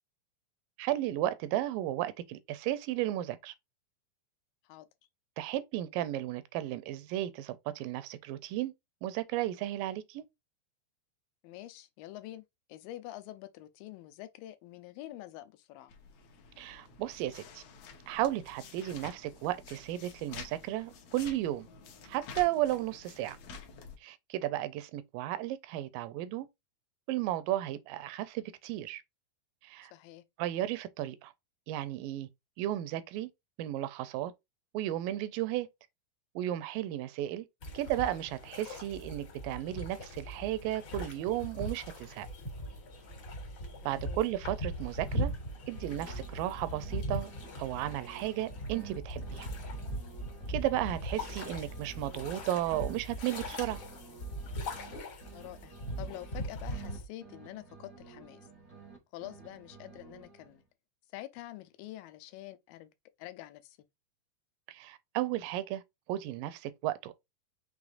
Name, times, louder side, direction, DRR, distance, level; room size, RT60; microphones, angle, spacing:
voice 1, 0.8-3.5 5.4-8.7 9.0-10.2 16.6-17.6 18.1-21.7 22.1-23.4 24.0-26.5 27.1-29.0 29.6-29.9 30.4-31.3 31.7-32.3 32.6-33.3 33.6-34.3 34.7-35.7 36.4-37.5 37.7-42.3 43.9-45.3 45.7-47.3 47.6-49.5 50.5-53.8 64.7-65.8 66.1-67.1, right 14 dB, 85° right, 2.2 m, -34 dB
voice 2, 11.4-12.4 12.7-15.9 29.9-30.2 43.8-44.3 55.3-58.5 59.1-60.6 61.1-62.9 63.2-63.8, left 15 dB, 90° left, 2.3 m, -46 dB
sound 1, 15.9-24.0, left 5 dB, 70° left, 1.6 m, -50 dB
sound 2, 37.6-57.1, equal, 50° left, 1.5 m, -40 dB
sound 3, 45.3-47.0 47.2-51.0 51.2-55.0 55.2-59.0 59.2-60.6, right 6 dB, 65° right, 0.7 m, -52 dB
6.2 x 3.2 x 2.5 m
omnidirectional pair, 4.0 m